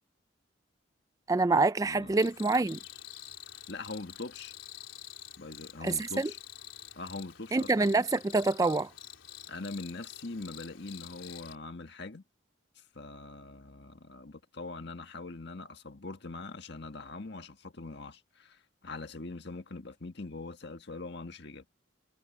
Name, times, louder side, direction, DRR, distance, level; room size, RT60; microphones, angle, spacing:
voice 1, 1.3-2.8 5.8-6.3 7.5-8.9, right 3 dB, 15° right, 0.3 m, -26 dB
voice 2, 1.8-2.2 3.5-4.5 5.4-6.4 7.0-7.7 9.5-12.2 12.8-21.7, left 3 dB, 55° left, 1.7 m, -42 dB
Cricket, 2.2-11.6, left 11 dB, 75° left, 4.0 m, -48 dB
head